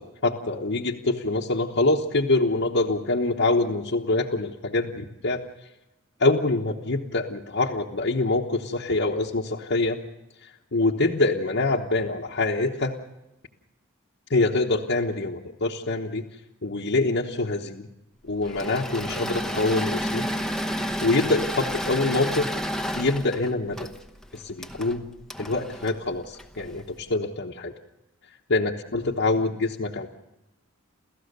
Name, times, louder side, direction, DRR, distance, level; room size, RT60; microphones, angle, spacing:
voice 1, 0.0-5.4 6.2-10.0 10.4-12.9 14.3-16.2 16.6-17.9 18.2-20.3 21.0-22.5 22.9-24.0 24.3-25.0 25.4-27.7 28.5-30.1, left 2 dB, 60° left, -2 dB, 1.2 m, -25 dB
Engine / Mechanisms, 18.4-26.8, equal, 5° left, 1.0 m, -31 dB
29.5 x 14.5 x 6.7 m, 0.97 s
head